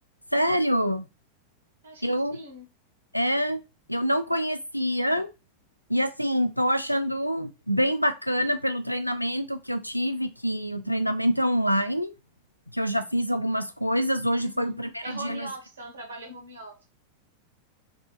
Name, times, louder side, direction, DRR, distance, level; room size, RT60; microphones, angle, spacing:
voice 1, 0.3-1.1 2.0-2.4 3.1-3.6 3.9-5.3 5.9-12.1 12.7-15.5, equal, 90° left, 10 dB, 0.4 m, -26 dB
voice 2, 1.8-2.7 14.4-16.8, right 1 dB, 70° right, 2 dB, 1.6 m, -41 dB
3.4 x 2.8 x 4.2 m, 0.27 s
figure-of-eight pair, 90°, 0 cm